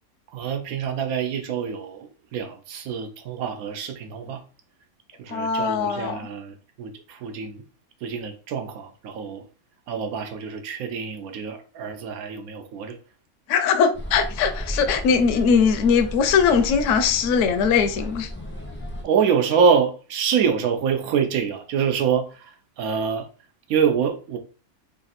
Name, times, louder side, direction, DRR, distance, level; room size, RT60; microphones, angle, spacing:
voice 1, 0.3-4.4 5.2-7.6 8.0-9.4 9.9-13.0 19.0-22.3 22.8-23.3 23.7-24.4, right 6 dB, 80° right, 1.1 m, -25 dB
voice 2, 5.3-6.3 13.5-18.3, left 6 dB, 70° left, 0.9 m, -20 dB
sound 1, 13.9-19.0, equal, 15° left, 0.4 m, -34 dB
3.3 x 2.5 x 4.0 m
omnidirectional pair, 1.5 m